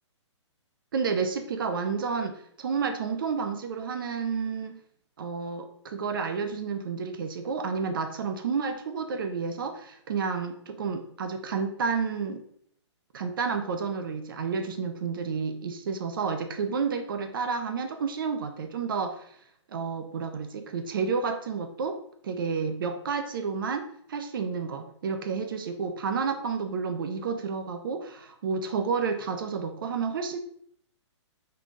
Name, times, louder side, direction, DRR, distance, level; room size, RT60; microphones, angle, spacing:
voice 1, 0.9-4.8 5.2-12.4 13.1-19.3 19.7-22.0 22.2-30.4, right 5 dB, 45° right, 6 dB, 0.5 m, -30 dB
3.8 x 3.2 x 3.6 m, 0.66 s
hypercardioid pair, 165°, 16 cm